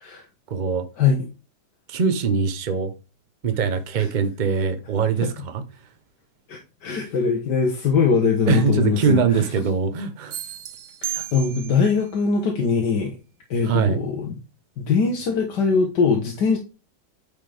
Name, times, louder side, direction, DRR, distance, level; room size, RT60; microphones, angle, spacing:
voice 1, 0.5-0.9 1.9-2.9 3.4-5.6 8.5-10.4 13.6-14.0, right 5 dB, 40° right, 0.8 m, -22 dB
voice 2, 6.5-9.2 11.0-13.1 13.5-14.3 14.8-16.6, left 5 dB, 80° left, 1.8 m, -21 dB
sound 1, 10.3-12.0, right 11 dB, 85° right, 1.5 m, -33 dB
9.2 x 5.1 x 3.4 m
omnidirectional pair, 1.8 m